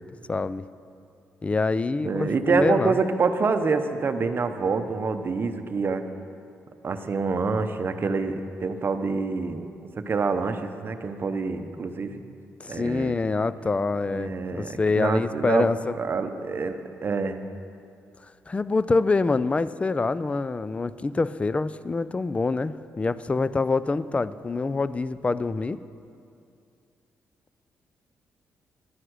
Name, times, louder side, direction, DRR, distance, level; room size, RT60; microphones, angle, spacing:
voice 1, 0.3-0.6 1.4-3.0 12.6-16.0 18.5-25.8, left 3 dB, 25° left, 16 dB, 0.3 m, -25 dB
voice 2, 2.0-6.0 6.8-9.7 10.0-12.2 12.7-13.1 14.1-15.7 16.0-17.4, right 4 dB, 40° right, 8 dB, 0.8 m, -26 dB
11.5 x 9.8 x 6.3 m, 2.5 s
cardioid pair, 95°, 5 cm